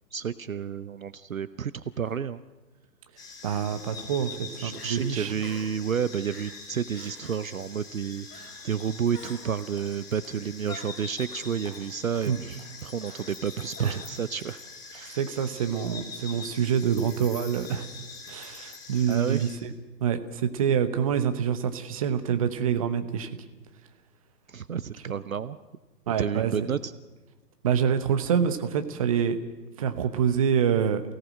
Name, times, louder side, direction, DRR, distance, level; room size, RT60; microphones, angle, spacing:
voice 1, 0.1-2.4 4.6-8.3 8.6-14.6 14.9-15.2 19.1-19.4 24.5-25.6 26.2-26.9, right 7 dB, 55° right, 15 dB, 0.7 m, -30 dB
Crying sobbing, 1.9-2.2 3.4-4.0 4.4-4.5 4.7-5.0 5.4-5.8 6.3-6.6 6.9-7.4 8.3-8.7 9.1-9.7 10.7-11.5 13.0-13.4 13.7-14.3, left 2 dB, 65° left, 4.3 m, -47 dB
sound 1, 3.2-19.6, left 4 dB, 5° left, 1.2 m, -44 dB
voice 2, 3.4-5.3 12.3-12.4 13.8-14.0 15.1-17.9 18.3-19.7 20.0-23.3 26.1-26.5 27.6-29.4 29.8-31.0, right 8 dB, 20° right, 9 dB, 0.9 m, -26 dB
sound 2, 8.8-8.9 9.2-9.4 9.8-9.9 10.2-10.4 10.7-10.8 11.2-11.3 11.6-11.8 12.1-12.3 12.6-12.7 13.1-13.2 13.6-13.7 14.0-14.1 14.5-14.6 14.9-15.1 15.4-15.5 15.9-16.0 16.3-16.4, left 2 dB, 40° left, 6.4 m, -53 dB
28.0 x 17.5 x 6.4 m, 1.2 s
figure-of-eight pair, 135°, 50 cm